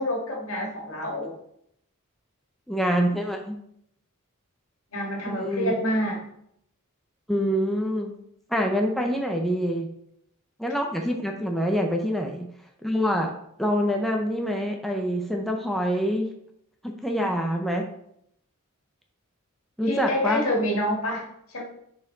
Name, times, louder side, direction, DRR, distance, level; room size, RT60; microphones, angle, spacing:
voice 1, 0.0-1.4 4.9-6.3 19.9-21.6, left 1 dB, 65° left, 0 dB, 1.8 m, -27 dB
voice 2, 2.7-3.6 5.3-5.7 7.3-8.1 8.5-9.9 10.6-12.5 12.8-13.3 13.6-16.3 16.8-17.8 19.8-20.4, equal, ahead, 1 dB, 0.5 m, -26 dB
6.3 x 4.3 x 3.9 m, 0.73 s
head